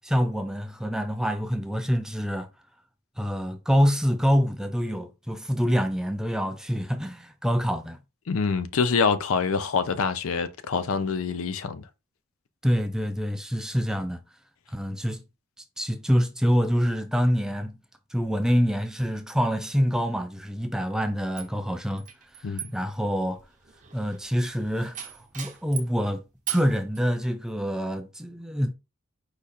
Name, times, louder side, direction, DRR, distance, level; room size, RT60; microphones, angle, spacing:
voice 1, 0.0-2.5 3.2-8.0 12.6-14.2 14.7-15.2 15.8-17.8 18.1-22.1 22.4-23.4 23.9-26.2 26.5-28.7, equal, 5° right, 0.3 m, -26 dB
voice 2, 8.3-11.9 22.4-22.6, left 5 dB, 70° left, 0.5 m, -25 dB
sound 1, 21.4-26.0 26.5-27.0, right 10 dB, 35° right, 0.7 m, -39 dB
4.9 x 2.4 x 4.2 m
head